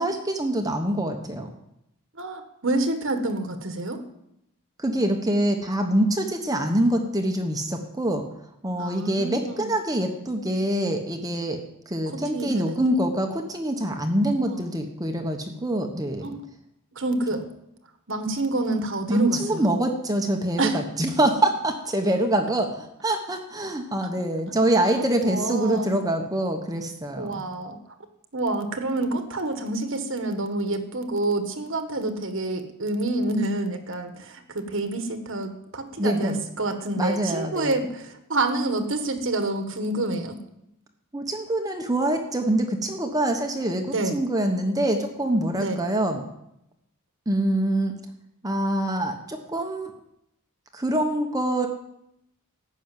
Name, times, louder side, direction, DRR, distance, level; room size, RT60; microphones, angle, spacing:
voice 1, 0.0-1.5 4.8-8.2 8.6-11.6 11.9-16.3 19.1-27.4 36.0-36.4 37.0-37.7 41.1-46.2 47.3-47.9 48.4-49.9 50.7-51.7, right 1 dB, 15° right, 4 dB, 1.1 m, -25 dB
voice 2, 2.1-4.0 8.8-9.7 12.1-12.8 14.5-14.8 16.2-16.4 16.9-17.5 18.1-19.7 20.6-20.8 24.0-24.1 24.5-24.6 25.2-26.0 27.2-27.8 28.3-40.4 43.9-44.2 45.5-45.8, right 2 dB, 60° right, 7 dB, 1.5 m, -28 dB
15.0 x 6.4 x 9.1 m, 0.81 s
head